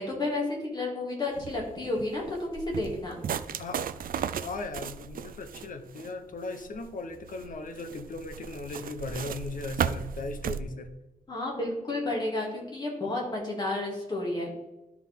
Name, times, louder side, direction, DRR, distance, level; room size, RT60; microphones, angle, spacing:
voice 1, 0.0-3.1 11.3-14.5, left 2 dB, 30° left, -2 dB, 2.4 m, -31 dB
sound 1, 1.3-10.6, right 8 dB, 75° right, 0.4 m, -36 dB
voice 2, 4.4-10.9, left 3 dB, 65° left, 7 dB, 0.9 m, -37 dB
12.5 x 4.7 x 3.6 m, 1.0 s
wide cardioid pair, 170°, 15 cm